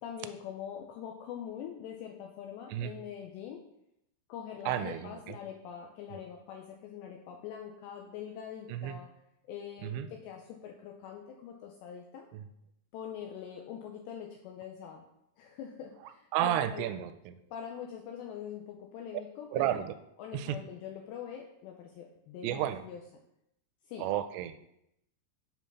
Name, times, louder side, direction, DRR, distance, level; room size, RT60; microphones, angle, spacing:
voice 1, 0.0-3.6 4.3-9.1 9.5-12.3 12.9-15.0 15.4-16.9 17.5-19.8 20.2-23.0 23.9-24.1, left 8 dB, 85° left, 1 dB, 2.5 m, -43 dB
voice 2, 4.7-5.2 8.7-9.0 9.8-10.1 12.3-12.4 16.3-17.4 19.5-19.9 20.3-20.6 22.4-22.8 24.0-24.6, right 12 dB, 85° right, 11 dB, 3.0 m, -32 dB
8.3 x 4.6 x 5.5 m, 0.80 s
omnidirectional pair, 5.7 m